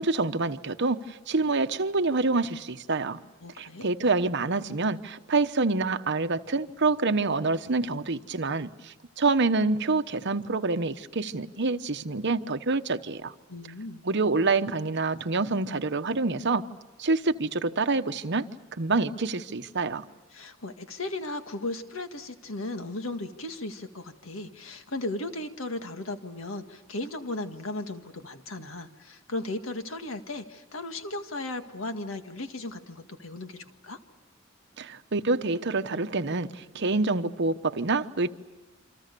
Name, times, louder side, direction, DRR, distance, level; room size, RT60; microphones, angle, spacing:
voice 1, 0.0-3.2 3.6-13.3 14.0-16.6 17.0-18.5 18.8-20.0 34.8-38.3, right 3 dB, 60° right, 1.0 m, -27 dB
voice 2, 3.4-3.9 13.5-14.0 20.3-34.0, left 2 dB, 80° left, 1.9 m, -36 dB
28.5 x 26.0 x 6.9 m
head